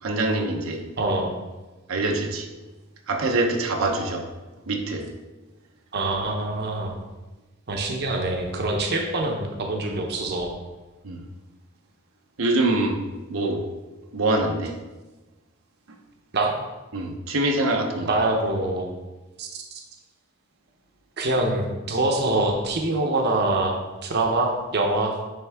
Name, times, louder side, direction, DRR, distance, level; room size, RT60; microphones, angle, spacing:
voice 1, 0.0-0.8 1.9-2.5 3.1-4.2 4.7-5.1 11.0-11.2 12.4-13.0 13.3-13.6 14.1-14.8 16.9-18.1, right 2 dB, 90° right, 2 dB, 0.8 m, -24 dB
voice 2, 1.0-1.3 5.9-6.9 7.7-10.5 16.3-16.5 18.0-18.9 19.4-19.8 21.2-23.7 24.0-25.2, right 2 dB, 55° right, 1 dB, 0.8 m, -24 dB
9.1 x 3.5 x 3.5 m, 1.2 s
head